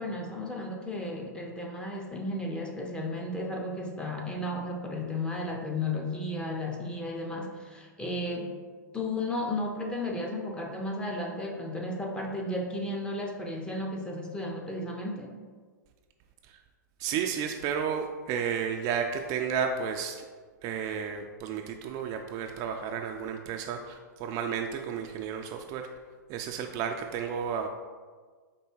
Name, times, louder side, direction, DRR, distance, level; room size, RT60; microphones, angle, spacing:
voice 1, 0.0-8.6 8.9-15.3, left 1 dB, 10° left, 0 dB, 0.6 m, -34 dB
voice 2, 17.0-20.3 20.6-25.9 26.3-27.7, right 7 dB, 35° right, 4 dB, 0.3 m, -32 dB
4.6 x 2.6 x 4.4 m, 1.5 s
hypercardioid pair, 115°, 10 cm